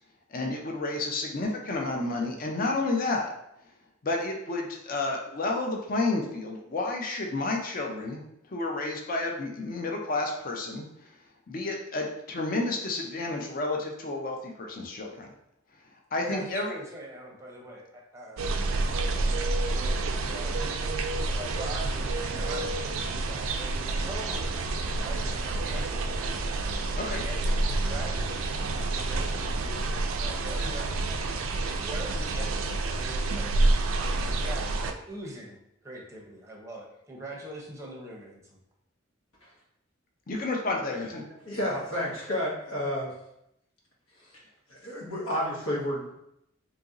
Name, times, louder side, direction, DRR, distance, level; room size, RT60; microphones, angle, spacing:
voice 1, 0.3-3.3 4.0-11.1 11.5-15.3 16.1-16.7 26.9-27.2 40.3-41.2, left 2 dB, 45° left, 1 dB, 0.5 m, -31 dB
voice 2, 16.2-18.4 19.1-20.7 21.3-26.4 27.0-31.0 31.8-35.6 35.8-38.4, right 1 dB, 15° right, -2 dB, 0.6 m, -42 dB
sound 1, 18.4-34.9, right 2 dB, 80° right, 0.4 m, -28 dB
voice 3, 41.4-43.1 44.2-44.4 44.7-46.2, left 1 dB, 90° left, -4 dB, 1.1 m, -31 dB
2.9 x 2.6 x 3.7 m, 0.80 s
head